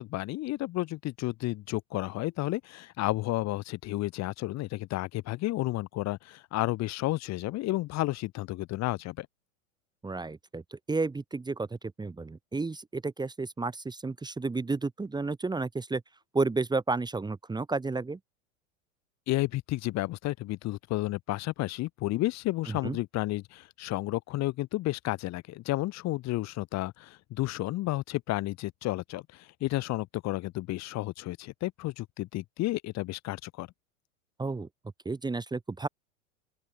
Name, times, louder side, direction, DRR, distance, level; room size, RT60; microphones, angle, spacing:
voice 1, 0.0-9.3 19.3-33.7, left 17 dB, 40° left, 2.4 m, -32 dB
voice 2, 10.0-16.0 16.3-18.2 22.7-23.0 34.4-34.7 35.1-35.9, right 3 dB, 10° right, 2.0 m, -32 dB
open air
hypercardioid pair, 100°, 41 cm